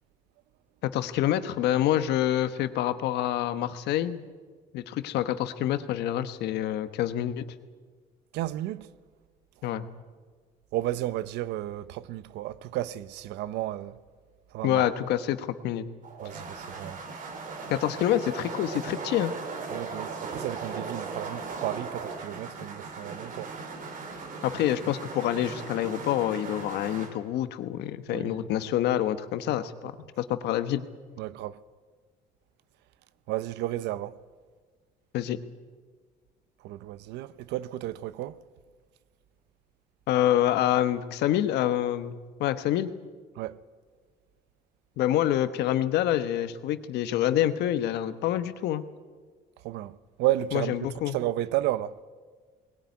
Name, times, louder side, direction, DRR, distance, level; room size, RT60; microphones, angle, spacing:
voice 1, 0.8-4.2 4.7-7.4 9.6-9.9 14.6-15.8 17.7-19.3 24.4-30.8 35.1-35.4 40.1-42.9 45.0-48.8 50.5-51.1, left 12 dB, 80° left, 1.2 m, -27 dB
voice 2, 8.3-8.9 10.7-14.0 14.5-14.8 16.2-17.0 19.7-23.5 28.1-28.4 31.2-31.6 33.3-34.2 36.6-38.4 43.4-43.6 49.6-52.0, right 14 dB, 85° right, 0.7 m, -32 dB
sound 1, 16.0-27.1, right 4 dB, 50° right, 3.1 m, -38 dB
20.5 x 17.5 x 9.5 m
cardioid pair, 110°, 17 cm